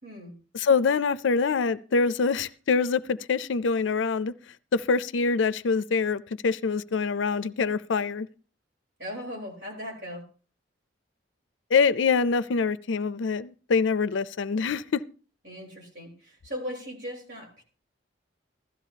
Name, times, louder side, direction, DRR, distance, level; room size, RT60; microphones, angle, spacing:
voice 1, 0.0-0.4 9.0-10.3 15.4-17.6, equal, 60° right, 4.0 m, -38 dB
voice 2, 0.5-4.3 4.7-8.3 11.7-15.0, left 5 dB, 75° left, 0.5 m, -25 dB
16.0 x 13.5 x 2.8 m
head